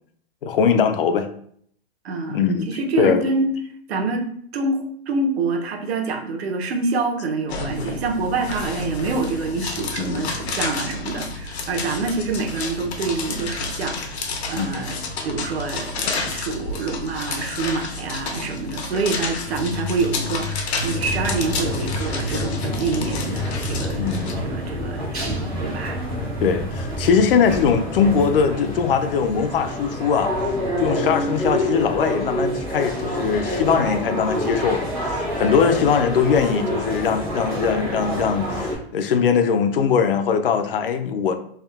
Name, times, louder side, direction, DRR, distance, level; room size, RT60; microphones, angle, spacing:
voice 1, 0.4-1.3 2.3-2.7 3.0-3.2 10.0-10.4 14.6-14.8 24.0-24.5 26.4-30.3 30.8-41.3, left 6 dB, 60° left, 0.5 m, -21 dB
voice 2, 2.0-3.5 3.9-4.3 4.5-24.0 24.4-26.0, right 3 dB, 75° right, 0.9 m, -26 dB
sound 1, 7.5-24.3, left 3 dB, 80° left, 0.9 m, -30 dB
sound 2, 19.4-24.4, left 3 dB, 90° right, 1.5 m, -31 dB
sound 3, 20.9-38.7, equal, 10° right, 0.4 m, -27 dB
3.5 x 2.7 x 3.4 m
hypercardioid pair, 180°, 32 cm